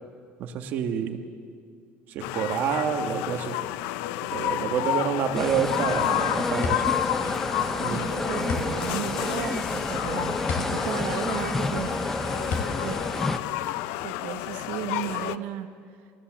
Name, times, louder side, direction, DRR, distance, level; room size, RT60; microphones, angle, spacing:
voice 1, 0.4-1.2 2.1-3.6 4.3-7.0 7.8-8.1, right 7 dB, 45° right, 5 dB, 1.4 m, -28 dB
sound 1, 2.2-15.4, left 15 dB, 85° left, 0.5 m, -31 dB
sound 2, 5.3-13.4, left 2 dB, 10° left, 0.7 m, -29 dB
sound 3, 6.6-14.1, left 5 dB, 45° left, 3.4 m, -35 dB
voice 2, 7.9-12.5 12.8-13.0 14.0-15.7, right 10 dB, 75° right, 6 dB, 1.3 m, -35 dB
28.0 x 16.0 x 7.5 m, 2.2 s
cardioid pair, 180°, 4 cm